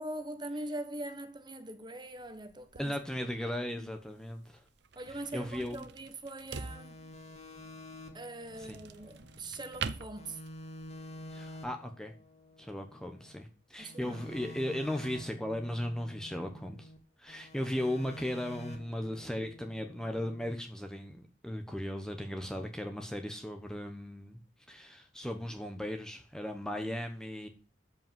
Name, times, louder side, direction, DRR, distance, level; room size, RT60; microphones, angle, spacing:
voice 1, 0.0-2.9 4.9-7.0 8.1-10.4 13.8-14.5 26.8-26.9, right 1 dB, 25° right, 1.3 m, -42 dB
sound 1, 2.2-10.9, right 5 dB, 60° right, 0.8 m, -46 dB
voice 2, 2.8-4.6 5.1-5.8 8.6-8.8 11.3-12.1 12.6-16.9 17.2-24.4 24.7-27.5, left 1 dB, 5° left, 1.1 m, -37 dB
sound 2, 6.6-9.9 10.2-13.4 13.8-17.0 17.3-20.5, equal, 35° left, 2.1 m, -49 dB
13.0 x 5.5 x 7.4 m
head